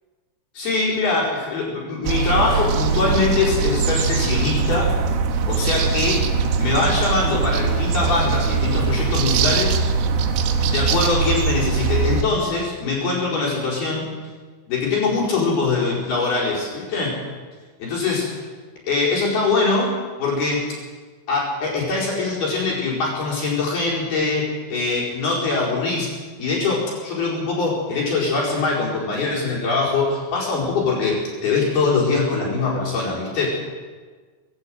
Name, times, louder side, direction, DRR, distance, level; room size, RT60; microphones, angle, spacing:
voice 1, 0.5-5.0 5.5-6.2 6.6-9.7 10.7-14.1 14.7-17.2 17.8-18.4 18.9-19.9 20.2-20.6 21.3-26.1 26.4-33.5, left 3 dB, 50° left, -5 dB, 6.6 m, -22 dB
sound 1, 2.0-12.2, right 5 dB, 75° right, 3.6 m, -22 dB
sound 2, 2.3-11.0, right 4 dB, 45° right, 2.2 m, -30 dB
21.0 x 16.5 x 8.0 m, 1.4 s
omnidirectional pair, 5.8 m